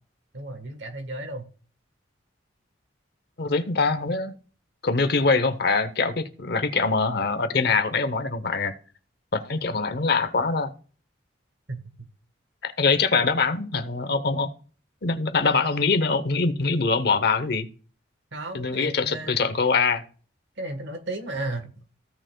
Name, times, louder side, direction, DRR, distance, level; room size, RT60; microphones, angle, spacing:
voice 1, 0.3-1.4 11.7-12.1 18.3-19.4 20.6-21.7, right 2 dB, 70° right, 1.2 m, -34 dB
voice 2, 3.4-4.3 4.8-8.7 9.3-10.7 12.6-14.5 15.0-17.7 18.5-20.0, left 4 dB, 55° left, 0.8 m, -23 dB
16.0 x 6.4 x 2.2 m
head